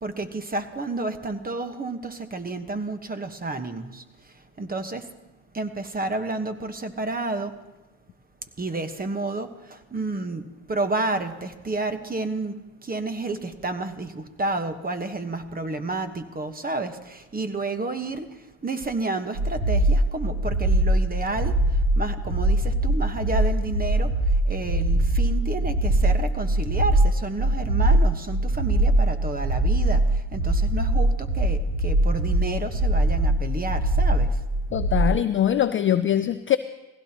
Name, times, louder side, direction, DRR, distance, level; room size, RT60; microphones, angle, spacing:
voice 1, 0.0-4.0 4.6-5.0 5.5-7.5 8.6-12.5 12.8-18.3 18.6-21.5 22.0-24.1 24.5-30.0 30.3-34.3, right 2 dB, 20° right, 9 dB, 1.2 m, -30 dB
sound 1, 19.4-35.2, right 1 dB, 60° right, 5.4 m, -22 dB
voice 2, 34.7-36.6, left 10 dB, 30° left, 12 dB, 0.4 m, -22 dB
19.0 x 16.0 x 2.9 m, 1.1 s
supercardioid pair, 80°, 48 cm